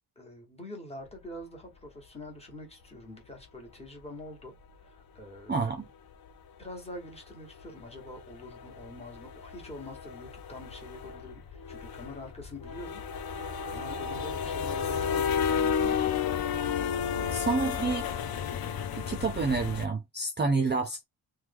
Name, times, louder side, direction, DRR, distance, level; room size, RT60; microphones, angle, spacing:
voice 1, 0.2-5.5 6.6-16.0 17.0-17.9, left 1 dB, 15° left, 1.0 m, -46 dB
sound 1, 3.4-3.5 5.2-5.4 5.7-5.8 6.1-6.3 6.6-6.7 7.0-19.9, left 7 dB, 60° left, 0.5 m, -32 dB
voice 2, 5.5-5.9 17.3-18.1 18.9-21.0, right 4 dB, 30° right, 0.3 m, -29 dB
3.0 x 2.2 x 3.4 m
wide cardioid pair, 165°, 41 cm